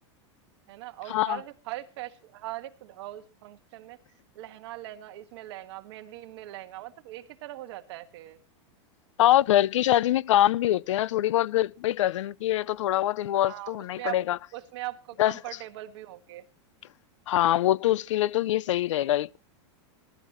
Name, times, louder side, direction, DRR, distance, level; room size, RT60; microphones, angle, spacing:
voice 1, 0.7-4.0 4.3-8.4 13.3-14.2 14.5-16.4, right 16 dB, 60° right, 1.7 m, -40 dB
voice 2, 9.2-14.4 15.2-15.3 17.3-19.4, left 13 dB, 80° left, 0.6 m, -24 dB
19.0 x 12.5 x 3.0 m
supercardioid pair, 150°, 15 cm